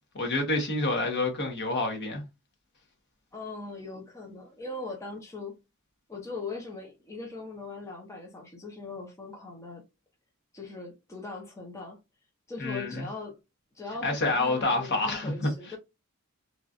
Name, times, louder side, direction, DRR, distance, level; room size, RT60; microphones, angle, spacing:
voice 1, 0.1-2.2 12.6-13.1 14.0-15.5, left 2 dB, 50° left, 1.1 m, -28 dB
voice 2, 3.3-5.6 6.1-9.8 10.5-12.0 12.5-13.4 13.7-15.8, left 3 dB, 15° left, 0.7 m, -40 dB
3.0 x 2.4 x 2.5 m
head